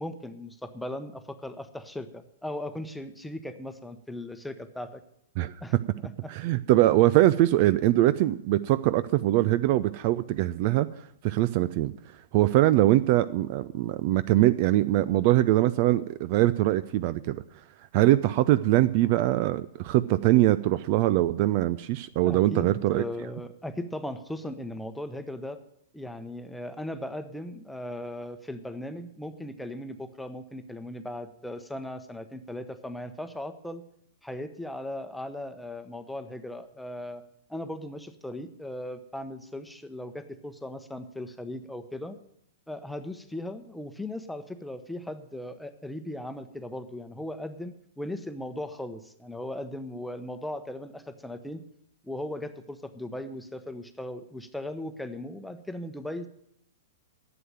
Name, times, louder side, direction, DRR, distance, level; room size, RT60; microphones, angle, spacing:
voice 1, 0.0-5.0 5.6-5.7 6.0-6.3 22.2-25.6 25.9-33.8 34.2-37.2 37.5-42.2 42.7-51.6 52.0-56.3, left 1 dB, 5° left, 9 dB, 1.0 m, -38 dB
voice 2, 6.3-10.9 11.2-11.9 12.3-17.4 17.9-23.0, right 15 dB, 40° right, 15 dB, 0.4 m, -22 dB
11.0 x 7.9 x 9.1 m, 0.75 s
figure-of-eight pair, 105°, 0 cm